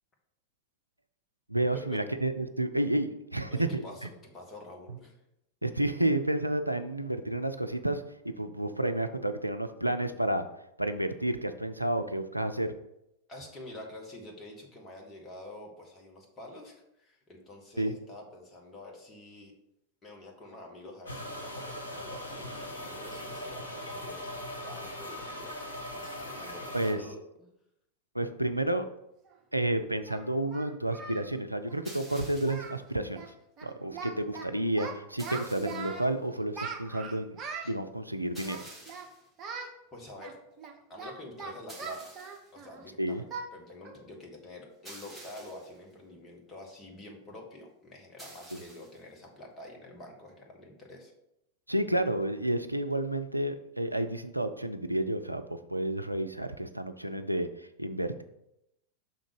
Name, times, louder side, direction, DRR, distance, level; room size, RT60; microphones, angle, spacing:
voice 1, 1.5-3.8 5.6-10.5 10.8-12.7 17.8-17.9 26.7-27.0 28.1-28.9 29.5-33.2 33.6-37.4 37.6-38.6 43.0-43.2 51.7-58.2, right 1 dB, 90° right, 8 dB, 0.4 m, -30 dB
voice 2, 3.5-4.1 4.3-5.2 6.0-6.1 13.3-19.5 20.0-25.6 25.9-27.5 33.8-33.9 39.9-40.4 40.9-42.1 42.5-51.1, left 1 dB, 20° left, -1 dB, 1.6 m, -47 dB
sound 1, 21.1-26.9, left 1 dB, 80° left, 1.1 m, -40 dB
Singing, 29.3-29.4 30.1-31.3 31.6-31.8 32.1-32.2 32.4-32.8 33.1-33.3 33.6-34.4 34.7-36.1 36.5-37.7 38.4-39.1 39.4-39.7 40.2-42.8 43.3-43.5 43.8-44.0 44.4-44.5 45.0-45.3, right 5 dB, 30° right, 1.0 m, -41 dB
sound 2, 31.8-32.8 35.2-36.0 38.3-39.3 41.7-42.5 44.8-45.8 48.2-49.0, right 1 dB, ahead, 1.9 m, -49 dB
5.8 x 3.8 x 5.2 m, 0.83 s
figure-of-eight pair, 90°, 0 cm